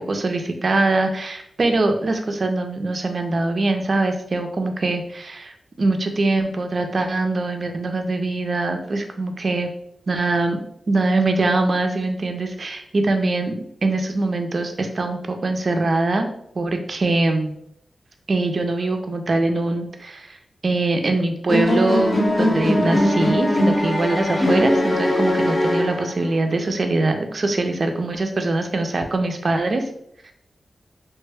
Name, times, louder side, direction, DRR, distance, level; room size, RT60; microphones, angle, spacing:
voice 1, 0.0-9.7 10.1-16.3 16.6-17.5 18.3-20.4 20.6-29.8, right 2 dB, 55° right, 5 dB, 0.5 m, -23 dB
sound 1, 21.5-26.4, left 1 dB, 45° left, 0.7 m, -20 dB
3.2 x 2.1 x 3.4 m, 0.72 s
cardioid pair, 70°, 0 cm